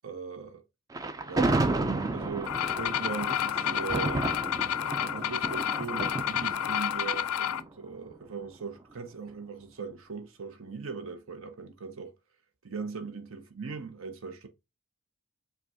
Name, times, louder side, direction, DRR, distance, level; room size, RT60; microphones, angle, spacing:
voice 1, 0.0-0.6 1.3-1.6 2.1-4.4 5.0-12.1 12.6-14.5, right 5 dB, 70° right, 0.7 m, -39 dB
Thunder, 0.9-8.1, right 2 dB, 15° right, 0.3 m, -32 dB
sound 1, 2.5-7.6, left 10 dB, 90° left, 0.4 m, -30 dB
5.1 x 2.3 x 3.5 m
head